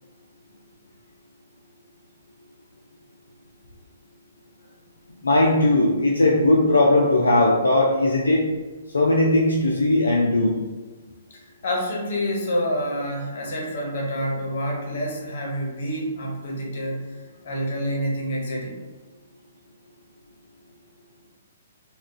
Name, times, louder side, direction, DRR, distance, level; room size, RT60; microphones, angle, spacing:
voice 1, 5.2-8.5 8.9-10.6, left 2 dB, 85° left, -2 dB, 0.4 m, -18 dB
voice 2, 11.3-17.0 17.4-18.8, equal, 55° left, -1 dB, 0.9 m, -28 dB
2.3 x 2.2 x 3.7 m, 1.3 s
figure-of-eight pair, 125°, 0 cm